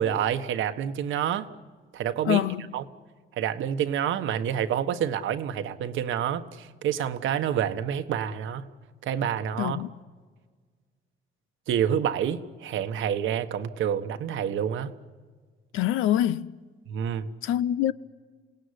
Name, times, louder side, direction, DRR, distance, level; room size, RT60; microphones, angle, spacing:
voice 1, 0.0-1.5 1.9-2.4 2.7-2.8 3.3-8.7 9.0-9.8 11.7-14.9 16.9-17.3, right 9 dB, 80° right, 1.4 m, -28 dB
voice 2, 2.2-2.7 9.6-9.9 15.7-16.5 17.4-17.9, left 12 dB, 85° left, 0.8 m, -25 dB
28.0 x 18.0 x 9.8 m
cardioid pair, 90°, 20 cm